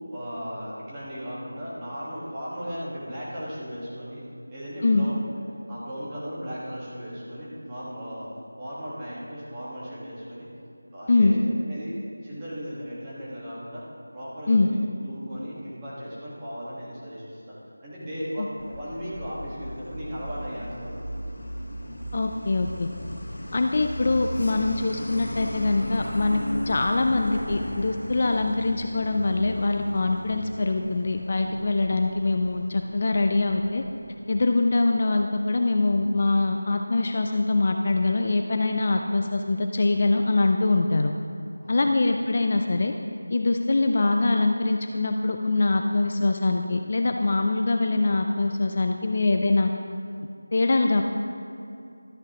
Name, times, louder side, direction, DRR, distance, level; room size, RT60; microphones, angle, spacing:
voice 1, 0.1-4.2 4.5-5.2 5.7-8.3 8.6-10.5 10.9-12.0 12.2-13.9 14.1-14.8 15.0-21.0 41.6-41.8, equal, 10° right, -9 dB, 1.5 m, -36 dB
Truck, 18.6-34.8, equal, 80° left, 1.5 m, -37 dB
voice 2, 22.1-22.9 23.5-33.8 34.3-41.1 41.7-42.9 43.3-49.7 50.5-51.0, left 3 dB, 35° left, 4 dB, 0.3 m, -23 dB
12.5 x 8.7 x 2.9 m, 2.6 s
figure-of-eight pair, 175°, 0 cm